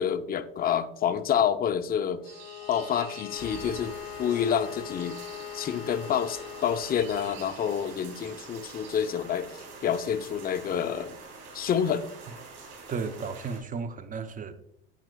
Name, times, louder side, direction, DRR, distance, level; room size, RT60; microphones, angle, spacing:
voice 1, 0.0-2.2 2.7-5.2 5.5-11.1 11.5-12.1, left 8 dB, 30° left, 0.5 m, -28 dB
Bowed string instrument, 2.2-7.2, left 12 dB, 85° left, 0.5 m, -41 dB
sound 1, 2.2-9.1, right 8 dB, 80° right, 1.7 m, -50 dB
sound 2, 3.3-13.6, right 4 dB, 60° right, 2.8 m, -46 dB
voice 2, 12.9-14.5, right 5 dB, 25° right, 0.7 m, -34 dB
8.9 x 5.8 x 2.3 m
supercardioid pair, 95°, 30 cm